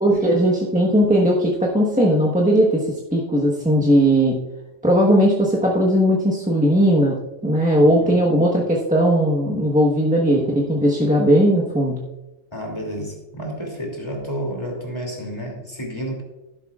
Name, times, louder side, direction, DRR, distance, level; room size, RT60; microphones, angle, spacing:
voice 1, 0.0-4.4 4.8-12.0, equal, 5° right, -4 dB, 1.2 m, -18 dB
voice 2, 7.8-8.2 12.5-16.2, equal, 20° left, 0 dB, 2.8 m, -30 dB
12.5 x 11.0 x 2.4 m, 0.99 s
omnidirectional pair, 1.3 m